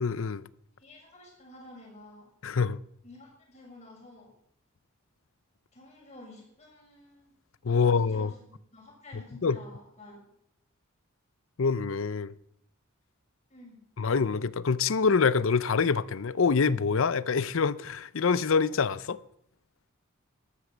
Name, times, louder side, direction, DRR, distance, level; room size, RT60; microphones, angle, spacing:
voice 1, 0.0-0.4 2.4-2.8 7.6-8.3 9.4-9.6 11.6-12.3 14.0-19.2, left 5 dB, 70° left, 0.6 m, -25 dB
voice 2, 0.8-2.3 3.0-4.3 5.7-7.3 7.8-10.2 13.5-13.8, left 1 dB, 30° left, 6.7 m, -50 dB
13.0 x 13.0 x 7.2 m
head